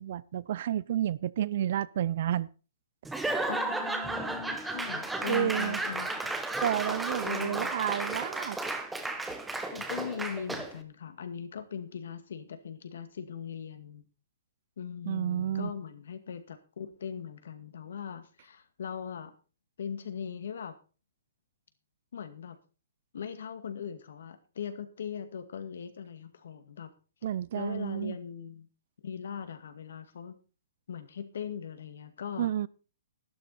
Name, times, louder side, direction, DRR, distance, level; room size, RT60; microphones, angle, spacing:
voice 1, 0.0-2.5 5.3-5.8 6.6-8.6 15.1-15.7 27.2-28.2 32.4-32.7, right 11 dB, 45° right, 0.5 m, -30 dB
Laughter / Applause / Crowd, 3.0-10.8, right 2 dB, 5° right, 0.9 m, -33 dB
voice 2, 3.5-6.3 7.2-7.7 9.7-14.0 14.8-19.3 19.8-20.7 22.1-22.6 23.1-26.9 27.5-28.7 29.0-30.3 30.9-32.7, left 7 dB, 65° left, 2.1 m, -40 dB
12.5 x 12.0 x 4.2 m
hypercardioid pair, 170°, 0 cm